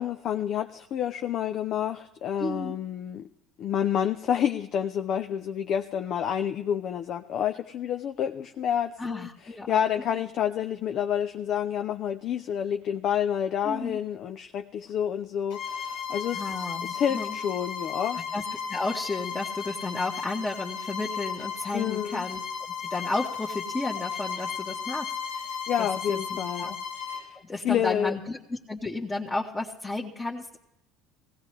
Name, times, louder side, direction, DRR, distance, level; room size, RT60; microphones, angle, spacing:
voice 1, 0.0-3.3 3.6-18.2 21.7-22.2 25.7-26.8 27.1-28.1, left 9 dB, 55° left, 6 dB, 0.5 m, -29 dB
voice 2, 2.4-2.8 9.0-9.8 10.1-10.2 13.6-14.0 16.3-17.4 18.3-18.4 18.7-22.4 22.9-25.1 25.4-25.5 25.8-27.0 27.4-30.6, left 2 dB, 20° left, -2 dB, 1.4 m, -33 dB
Bowed string instrument, 15.5-27.3, left 6 dB, 70° left, 1.3 m, -35 dB
18.0 x 16.5 x 3.3 m, 0.85 s
hypercardioid pair, 70°, 0 cm